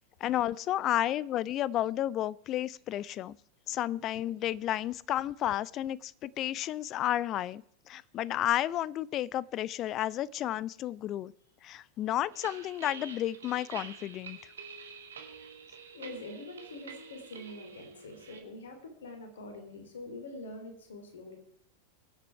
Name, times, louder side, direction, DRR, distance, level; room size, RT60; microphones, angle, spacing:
voice 1, 0.2-3.4 3.7-11.3 11.6-14.4, left 13 dB, 35° left, 22 dB, 0.5 m, -32 dB
sound 1, 12.3-18.4, right 5 dB, 65° right, 2.2 m, -47 dB
voice 2, 15.9-21.4, left 2 dB, 65° left, 6 dB, 3.3 m, -45 dB
23.5 x 8.3 x 4.6 m, 0.68 s
figure-of-eight pair, 90°, 0 cm